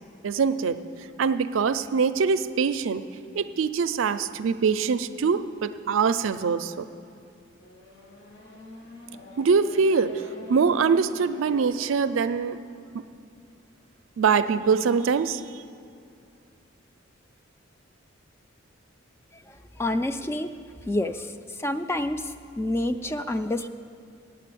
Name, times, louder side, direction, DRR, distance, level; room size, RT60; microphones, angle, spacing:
voice 1, 0.2-0.8 1.2-3.0 3.4-6.9 9.4-10.1 10.5-12.6 14.2-15.4, right 5 dB, 85° right, 11 dB, 0.4 m, -23 dB
Race car auto racing / Accelerating revving vroom, 7.6-12.8, left 2 dB, 55° left, 1.7 m, -45 dB
voice 2, 19.3-20.5 20.9-23.7, left 1 dB, 15° left, 9 dB, 0.3 m, -28 dB
8.9 x 8.3 x 8.5 m, 2.4 s
head